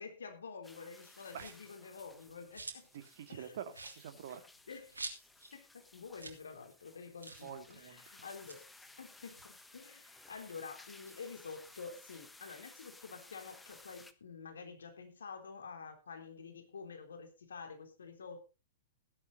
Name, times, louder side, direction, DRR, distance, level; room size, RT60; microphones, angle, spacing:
voice 1, 0.0-2.9 3.3-3.6 4.7-4.9 5.5-8.7 9.0-18.4, left 5 dB, 70° left, 6 dB, 3.5 m, -49 dB
sound 1, 0.6-14.1, left 2 dB, 5° left, 1.3 m, -58 dB
sound 2, 1.3-1.7 2.2-3.0 3.3-3.4 3.7-5.6 5.8-5.9 6.1-6.5 6.7-6.8 7.2-7.5 8.3-10.0 10.4-11.9, right 3 dB, 80° right, 3.1 m, -49 dB
voice 2, 2.9-4.4 7.4-8.0, right 8 dB, 55° right, 8 dB, 2.3 m, -46 dB
16.0 x 11.0 x 4.0 m, 0.30 s
figure-of-eight pair, 105°, 0 cm